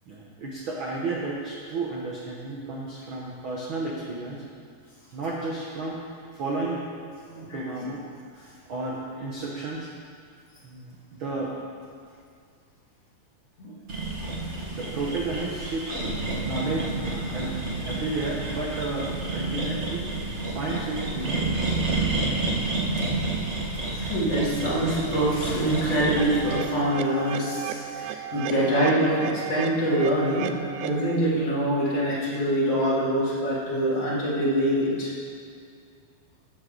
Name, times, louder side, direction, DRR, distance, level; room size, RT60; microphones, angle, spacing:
voice 1, 0.1-4.4 5.1-6.9 7.4-9.9 10.6-11.6 14.4-21.9, right 2 dB, 65° right, -3 dB, 1.2 m, -33 dB
voice 2, 7.2-7.6 13.6-13.7 14.2-14.3 14.9-15.0 23.9-35.1, right 1 dB, 45° left, -8 dB, 3.7 m, -25 dB
sound 1, 13.9-26.6, right 2 dB, 50° right, 0.8 m, -29 dB
sound 2, 26.2-31.2, right 10 dB, 85° right, 1.7 m, -35 dB
13.0 x 9.5 x 4.0 m, 2.2 s
omnidirectional pair, 3.9 m